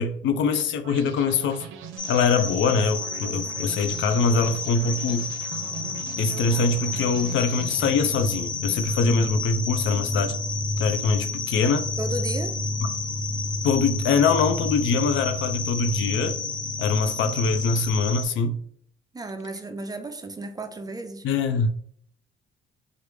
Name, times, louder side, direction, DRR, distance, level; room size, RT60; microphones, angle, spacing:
voice 1, 0.0-1.7 2.1-5.3 6.2-10.4 10.8-11.9 13.6-16.4 16.8-18.6 21.2-21.7, left 4 dB, 70° left, 0.4 m, -23 dB
sound 1, 0.8-8.5, right 7 dB, 80° right, 0.5 m, -42 dB
sound 2, 2.0-18.2, left 4 dB, 45° left, 1.1 m, -32 dB
sound 3, 5.5-17.9, left 1 dB, 10° left, 0.7 m, -33 dB
voice 2, 12.0-12.5 19.1-21.3, right 2 dB, 20° right, 0.4 m, -33 dB
3.2 x 2.5 x 3.1 m
cardioid pair, 90°, 20 cm